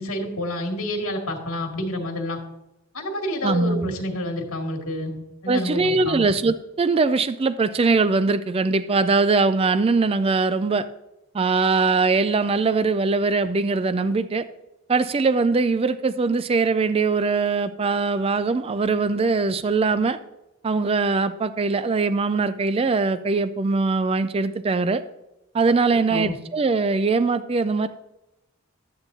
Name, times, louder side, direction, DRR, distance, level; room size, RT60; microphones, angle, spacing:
voice 1, 0.0-2.4 2.9-5.2 5.4-6.3 26.1-26.4, left 1 dB, 75° left, 1 dB, 1.9 m, -28 dB
voice 2, 3.4-4.0 5.5-10.9 11.3-14.5 14.9-20.2 20.6-25.0 25.5-27.9, right 4 dB, 25° right, 13 dB, 0.3 m, -21 dB
12.5 x 8.9 x 2.7 m, 0.93 s
head